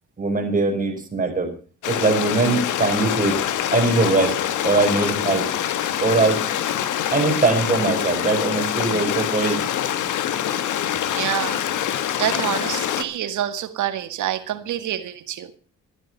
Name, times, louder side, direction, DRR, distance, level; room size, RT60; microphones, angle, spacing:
voice 1, 0.2-1.5 1.9-3.4 3.7-4.4 4.6-5.5 6.0-6.5 7.1-9.6, right 3 dB, 25° right, 4 dB, 5.6 m, -21 dB
Stream, 1.8-13.0, left 10 dB, 80° left, 1.6 m, -25 dB
voice 2, 11.0-15.6, right 11 dB, 80° right, 10 dB, 2.0 m, -27 dB
14.0 x 12.5 x 5.7 m, 0.38 s
cardioid pair, 90°, 30 cm